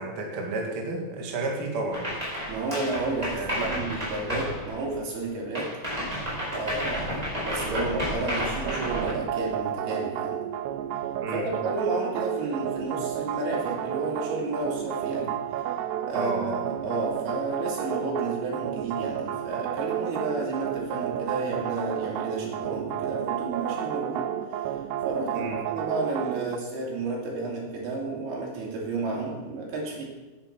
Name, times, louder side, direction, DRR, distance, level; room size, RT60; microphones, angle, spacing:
voice 1, 0.0-2.1 3.3-3.7 11.2-11.5 16.1-16.6 25.3-25.6, right 2 dB, 45° right, -1 dB, 2.0 m, -31 dB
sound 1, 1.9-5.2 5.5-9.1, equal, 10° right, 3.8 m, -31 dB
voice 2, 2.5-5.8 6.5-10.4 11.3-15.3 16.1-24.3 25.0-30.1, right 2 dB, 60° right, -3 dB, 4.3 m, -32 dB
sound 2, 8.7-26.6, right 10 dB, 85° right, 2.5 m, -31 dB
9.9 x 9.7 x 5.9 m, 1.2 s
omnidirectional pair, 5.2 m